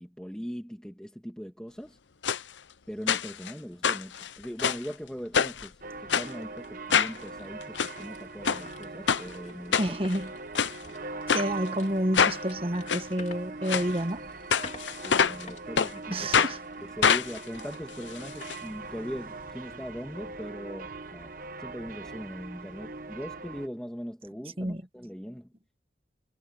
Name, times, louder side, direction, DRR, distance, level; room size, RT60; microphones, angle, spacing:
voice 1, 0.0-2.0 2.9-10.0 14.9-16.3 17.0-21.3 21.6-25.5, equal, 5° left, 2.6 m, -40 dB
sound 1, 2.2-2.4 3.1-3.5 3.8-4.9 5.3-5.7 6.1-6.3 6.9-7.2 7.6-7.9 8.4-8.6 9.1-9.2 9.7-10.2 10.5-10.7 11.3-11.5 12.1-12.4 12.9-13.0 13.7-13.9 14.5-15.4 15.8-15.9 16.3-16.5 17.0-18.6 18.8-18.9 19.2-19.3, left 7 dB, 90° left, 0.8 m, -25 dB
sound 2, 5.8-23.7, right 3 dB, 50° right, 1.1 m, -41 dB
sound 3, 6.4-17.1 17.5-17.7 18.2-18.6, left 3 dB, 40° left, 3.5 m, -51 dB
voice 2, 9.8-10.3 11.3-14.2 16.1-16.6 24.6-24.8, right 1 dB, 30° right, 1.6 m, -29 dB
head